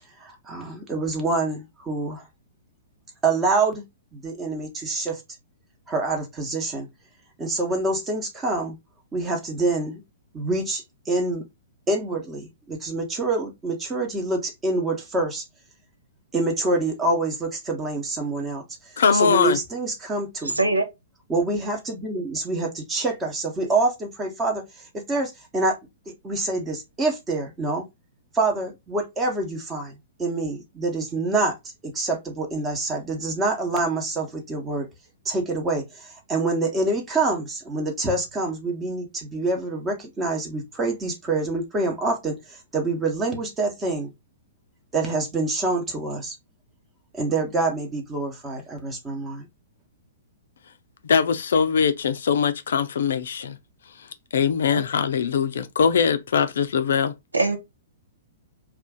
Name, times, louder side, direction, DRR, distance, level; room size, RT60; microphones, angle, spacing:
voice 1, 0.2-2.3 3.2-3.8 4.1-5.2 5.9-6.9 7.4-8.8 9.1-10.0 10.3-11.4 11.9-15.4 16.3-18.6 18.9-20.6 21.3-25.8 26.2-27.8 28.3-31.6 31.8-34.9 35.2-44.1 44.9-46.4 47.1-49.4, right 2 dB, 15° right, 0.9 m, -26 dB
voice 2, 19.0-19.6 51.0-53.6 54.3-57.1, left 6 dB, 60° left, 0.4 m, -21 dB
voice 3, 20.4-20.8 54.7-54.8 57.3-57.6, right 2 dB, 80° right, 0.7 m, -22 dB
2.4 x 2.4 x 3.6 m
figure-of-eight pair, 110°, 0 cm